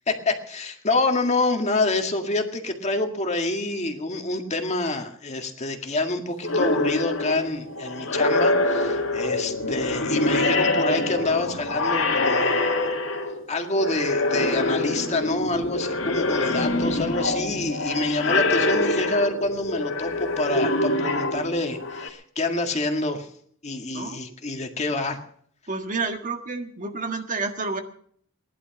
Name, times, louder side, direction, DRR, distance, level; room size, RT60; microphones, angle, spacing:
voice 1, 0.1-12.9 13.5-23.3 23.6-25.2, left 2 dB, 35° left, 4 dB, 1.9 m, -27 dB
sound 1, 6.4-13.5 13.7-22.1, left 2 dB, 80° left, 2.1 m, -25 dB
voice 2, 23.9-24.3 25.7-27.8, right 3 dB, 40° right, 5 dB, 1.7 m, -30 dB
19.0 x 11.0 x 6.0 m, 0.62 s
head